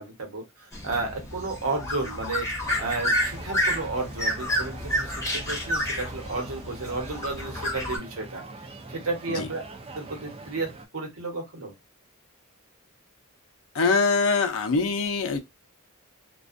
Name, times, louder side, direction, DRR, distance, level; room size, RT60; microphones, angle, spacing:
voice 1, 0.0-8.4 8.9-9.6 9.9-11.7, right 3 dB, 70° right, 0.9 m, -32 dB
sound 1, 0.7-8.0, equal, 15° left, 0.8 m, -29 dB
sound 2, 2.6-10.9, right 2 dB, 25° right, 0.4 m, -43 dB
voice 2, 13.7-15.4, left 4 dB, 65° left, 0.5 m, -23 dB
2.5 x 2.2 x 2.4 m
head